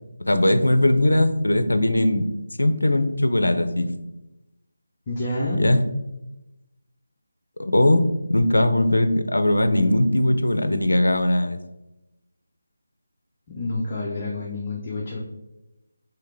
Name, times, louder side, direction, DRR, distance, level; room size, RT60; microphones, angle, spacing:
voice 1, 0.2-2.2 2.6-3.9 5.6-5.8 7.6-11.6, left 1 dB, 80° left, 9 dB, 0.5 m, -20 dB
voice 2, 5.1-5.6 13.5-15.2, left 2 dB, 30° left, -4 dB, 0.7 m, -28 dB
4.7 x 3.2 x 3.3 m, 0.95 s
figure-of-eight pair, 160°, 0 cm